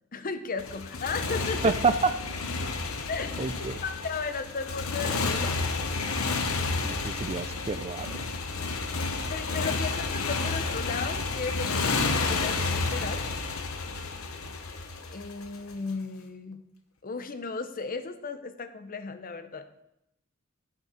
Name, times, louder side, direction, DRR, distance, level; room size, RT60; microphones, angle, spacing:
voice 1, 0.1-1.8 3.1-3.4 3.8-5.6 9.3-13.2 15.1-16.6 17.0-19.7, left 4 dB, 40° left, 10 dB, 0.7 m, -35 dB
Motorcycle, 0.6-15.7, left 3 dB, 75° left, 1.0 m, -31 dB
voice 2, 1.6-2.1 3.4-3.8 6.8-8.1, right 4 dB, 30° right, 11 dB, 0.4 m, -27 dB
9.1 x 6.3 x 5.6 m, 0.82 s
head